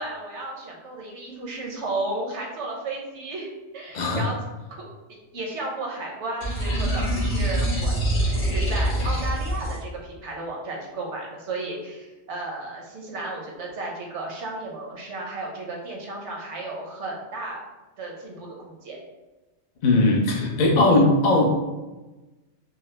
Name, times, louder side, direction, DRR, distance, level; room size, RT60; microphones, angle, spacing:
voice 1, 0.0-3.5 3.7-4.4 5.3-17.6 18.0-19.0, right 2 dB, 75° right, -1 dB, 1.2 m, -33 dB
voice 2, 3.9-4.3 19.8-21.4, left 2 dB, 45° left, 0 dB, 0.7 m, -19 dB
sound 1, 6.4-9.8, right 1 dB, 70° left, 1.8 m, -24 dB
4.7 x 2.0 x 3.3 m, 1.1 s
omnidirectional pair, 1.2 m